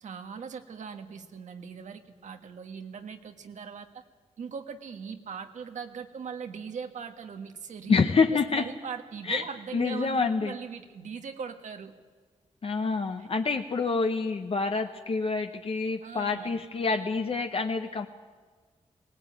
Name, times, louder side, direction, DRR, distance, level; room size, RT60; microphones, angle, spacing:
voice 1, 0.0-4.0 4.4-11.9 13.2-13.3 16.0-16.5, right 6 dB, 90° right, 6 dB, 1.5 m, -40 dB
voice 2, 7.9-8.6 9.3-9.4 9.7-10.5 12.6-18.1, left 4 dB, 50° left, 6 dB, 0.9 m, -27 dB
20.0 x 18.0 x 9.0 m, 1.5 s
wide cardioid pair, 95°, 12 cm